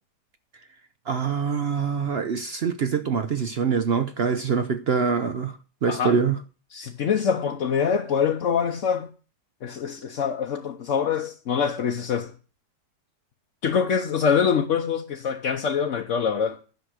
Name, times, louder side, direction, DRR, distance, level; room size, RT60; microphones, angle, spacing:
voice 1, 1.1-6.4, right 6 dB, 60° right, 0.6 m, -24 dB
voice 2, 5.9-6.2 6.7-9.1 9.6-12.3 13.6-16.6, left 7 dB, 55° left, 1.1 m, -24 dB
11.0 x 6.3 x 7.8 m
omnidirectional pair, 1.8 m